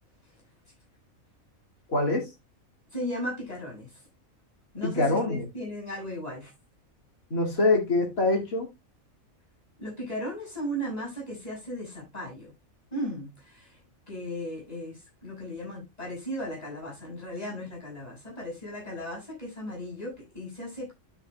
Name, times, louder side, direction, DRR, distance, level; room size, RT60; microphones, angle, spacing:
voice 1, 1.9-2.3 4.8-5.4 7.3-8.7, left 2 dB, 85° left, 2.8 m, -24 dB
voice 2, 2.9-4.0 4.7-6.5 9.8-12.5 12.9-13.8 14.1-20.9, equal, 30° left, 6.8 m, -36 dB
12.0 x 7.7 x 2.3 m
omnidirectional pair, 1.4 m